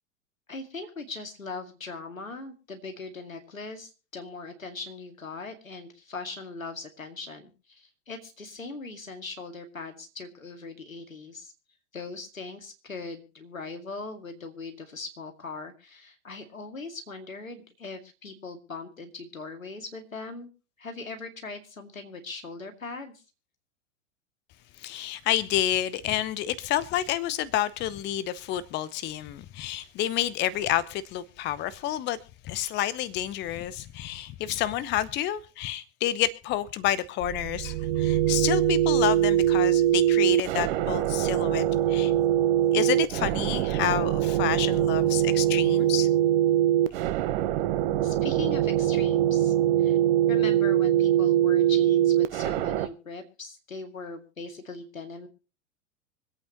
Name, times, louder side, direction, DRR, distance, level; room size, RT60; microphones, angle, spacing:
voice 1, 0.5-11.5 11.9-20.5 20.8-23.1 48.0-49.5 49.8-50.0 50.3-55.3, left 3 dB, 85° left, 2.4 m, -40 dB
voice 2, 24.8-32.2 32.4-42.1 42.7-46.1, left 12 dB, 25° left, 0.7 m, -29 dB
sound 1, 37.2-52.9, right 12 dB, 45° right, 1.1 m, -23 dB
25.0 x 8.7 x 2.9 m
figure-of-eight pair, 95°, 39 cm